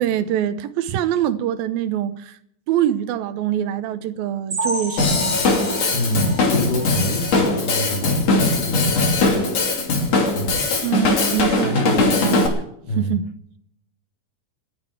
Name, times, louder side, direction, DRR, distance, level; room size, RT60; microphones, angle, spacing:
voice 1, 0.0-2.4 2.7-5.4 10.8-12.5 13.0-13.3, right 11 dB, 75° right, 2.6 m, -24 dB
sound 1, 4.5-8.1 8.5-8.7 9.0-9.1 9.6-9.7, right 1 dB, 20° right, 7.1 m, -32 dB
Drum kit / Drum, 5.0-12.5, left 3 dB, 45° left, 3.6 m, -20 dB
voice 2, 5.9-9.5 10.3-10.7 12.8-13.1, equal, 80° left, 4.4 m, -27 dB
29.0 x 10.0 x 4.6 m
omnidirectional pair, 4.5 m